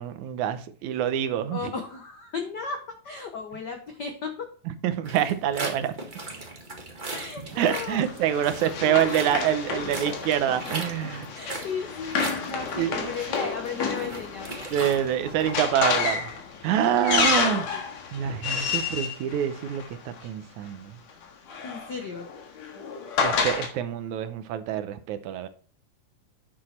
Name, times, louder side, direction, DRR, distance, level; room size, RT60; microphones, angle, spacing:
voice 1, 0.0-1.7 4.8-5.9 7.6-11.3 12.8-13.1 14.7-16.3 16.6-17.7 18.1-19.8 20.2-20.9 23.2-25.5, right 10 dB, 75° right, 2.1 m, -26 dB
voice 2, 1.5-4.5 7.1-8.1 8.9-9.0 9.2-9.4 11.3-14.7 17.5-17.8 21.6-22.3, left 5 dB, 85° left, 0.9 m, -35 dB
sound 1, 5.0-15.5, right 2 dB, 25° right, 1.1 m, -39 dB
Run, 7.6-20.2 21.2-23.7, left 5 dB, 65° left, 2.7 m, -30 dB
9.7 x 6.7 x 4.3 m
omnidirectional pair, 3.5 m